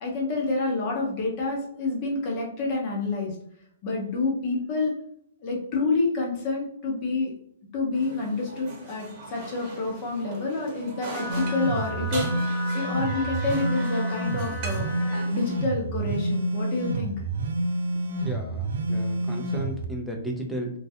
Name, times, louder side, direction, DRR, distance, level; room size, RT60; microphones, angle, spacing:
voice 1, 0.0-3.4 3.8-4.9 5.4-7.3 7.7-17.2, left 3 dB, 35° left, -1 dB, 0.8 m, -28 dB
sound 1, 7.9-15.6, right 2 dB, 30° right, 1.1 m, -40 dB
Wind instrument woodwind instrument, 11.1-15.3, left 1 dB, 50° left, 1.1 m, -37 dB
sound 2, 11.3-19.8, right 1 dB, 75° right, 0.4 m, -28 dB
voice 2, 18.2-20.7, right 1 dB, ahead, -1 dB, 0.5 m, -34 dB
2.3 x 2.1 x 2.8 m, 0.67 s
hypercardioid pair, 155°, 0 cm